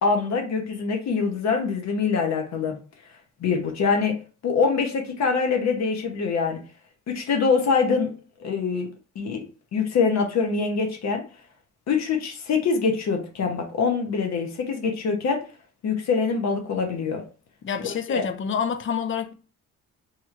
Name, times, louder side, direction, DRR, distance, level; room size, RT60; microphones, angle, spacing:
voice 1, 0.0-2.8 3.4-6.6 7.1-8.1 8.4-8.9 9.1-9.4 9.7-11.2 11.9-15.4 15.8-17.2 17.8-18.3, left 5 dB, 60° left, 0.9 m, -24 dB
voice 2, 17.6-19.3, left 7 dB, 40° left, 0.5 m, -27 dB
2.9 x 2.8 x 2.4 m
cardioid pair, 90°, 30 cm